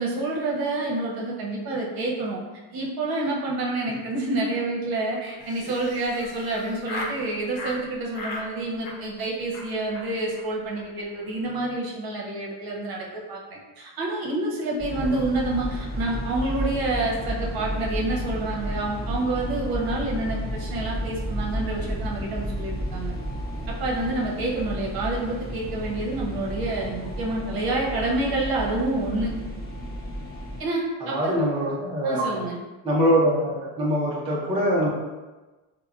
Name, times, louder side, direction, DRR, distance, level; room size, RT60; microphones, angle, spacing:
voice 1, 0.0-2.4 2.7-23.1 23.7-29.3 30.6-31.3 32.0-32.6, right 2 dB, 50° right, -2 dB, 0.8 m, -28 dB
Laughter, 5.4-7.2 7.5-7.8 8.1-8.5 8.8-9.2 9.5-9.7 9.9-10.1 10.3-10.4 10.7-10.8 11.1-11.4, left 2 dB, 75° left, 0.8 m, -37 dB
sound 1, 14.8-30.6, equal, 10° left, 1.2 m, -32 dB
voice 2, 31.0-32.4 32.8-34.9, equal, 15° right, -5 dB, 0.4 m, -23 dB
3.3 x 2.1 x 2.3 m, 1.2 s
cardioid pair, 110°, 47 cm